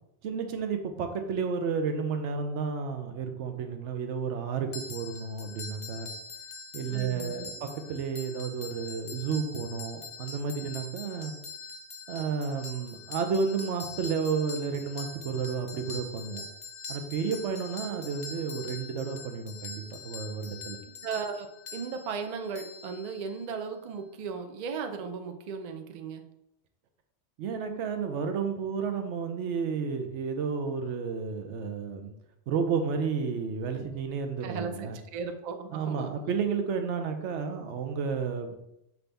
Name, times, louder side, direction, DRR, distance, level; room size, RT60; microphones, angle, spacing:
voice 1, 0.2-6.1 6.7-11.3 12.1-16.4 16.9-20.8 27.4-32.1 32.5-35.0 35.7-38.6, right 5 dB, 85° right, 6 dB, 0.9 m, -32 dB
sound 1, 4.7-23.5, left 4 dB, 55° left, 0.5 m, -44 dB
voice 2, 6.9-7.5 21.0-26.2 34.4-36.2, right 5 dB, 55° right, 6 dB, 0.5 m, -36 dB
5.8 x 2.6 x 3.3 m, 0.83 s
omnidirectional pair, 1.2 m